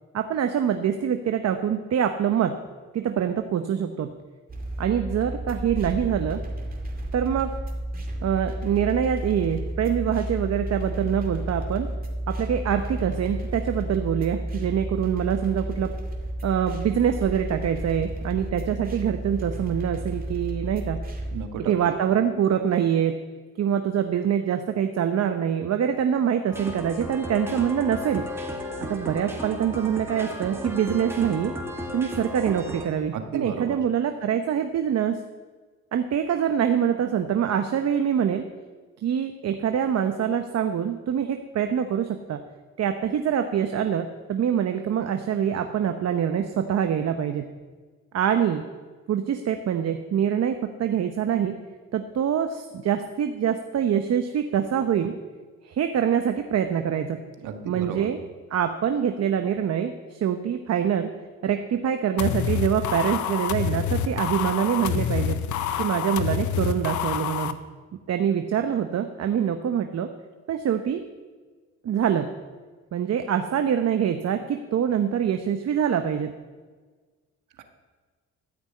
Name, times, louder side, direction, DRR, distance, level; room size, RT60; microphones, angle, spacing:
voice 1, 0.1-2.5 2.9-4.1 4.8-6.4 7.1-7.5 8.2-11.9 12.3-15.9 16.4-21.0 21.7-23.2 23.6-28.3 28.9-31.5 31.9-35.2 35.9-38.4 39.0-42.4 42.8-47.4 48.1-48.6 49.1-51.5 51.9-55.1 55.6-57.2 57.7-58.2 58.5-61.1 61.4-65.4 65.8-67.6 68.1-70.1 70.5-71.0 71.8-72.3 72.9-76.3, right 8 dB, 55° right, 7 dB, 0.9 m, -25 dB
sound 1, 4.5-21.4, right 1 dB, 30° right, 2.4 m, -32 dB
voice 2, 21.3-21.9 33.1-33.8 57.4-58.1 77.6-77.7, right 7 dB, 80° right, 6 dB, 1.6 m, -33 dB
sound 2, 26.5-32.8, equal, 10° right, 2.3 m, -34 dB
sound 3, 62.2-67.5, left 9 dB, 75° left, 0.8 m, -27 dB
14.0 x 6.2 x 8.4 m, 1.4 s
cardioid pair, 90°, 30 cm